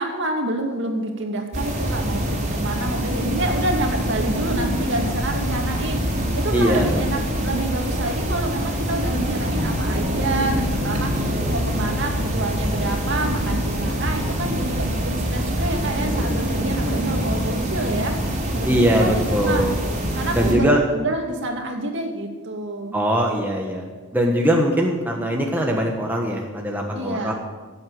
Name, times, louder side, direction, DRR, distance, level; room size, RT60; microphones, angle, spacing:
voice 1, 0.0-19.7 20.2-22.9 26.9-27.3, right 1 dB, 55° right, 2 dB, 2.3 m, -28 dB
sound 1, 1.5-20.5, equal, 30° right, 3.4 m, -24 dB
voice 2, 6.5-7.0 18.6-19.7 20.3-20.8 22.9-23.9 24.1-27.3, equal, 10° right, 0 dB, 1.3 m, -21 dB
17.0 x 8.3 x 7.8 m, 1.3 s
head